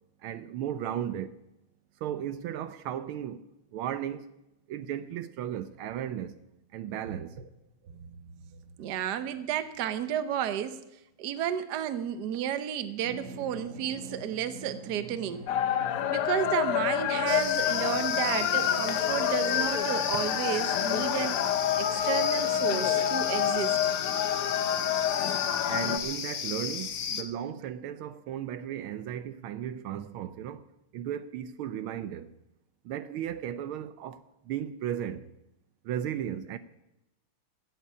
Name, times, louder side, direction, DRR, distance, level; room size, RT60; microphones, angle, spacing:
voice 1, 0.2-1.4 2.0-3.5 3.7-4.3 4.7-6.4 6.7-7.4 25.7-30.7 30.9-32.3 32.8-35.3 35.8-36.6, right 10 dB, 80° right, 1.5 m, -35 dB
voice 2, 8.5-10.8 11.2-15.5 16.1-23.9, right 10 dB, 60° right, 1.3 m, -32 dB
Drum, 13.0-26.0, right 2 dB, 40° right, 1.6 m, -45 dB
sound 1, 15.5-26.0, left 10 dB, 85° left, 1.9 m, -28 dB
sound 2, 17.3-27.2, left 7 dB, 55° left, 1.2 m, -34 dB
16.0 x 8.1 x 8.3 m
omnidirectional pair, 2.4 m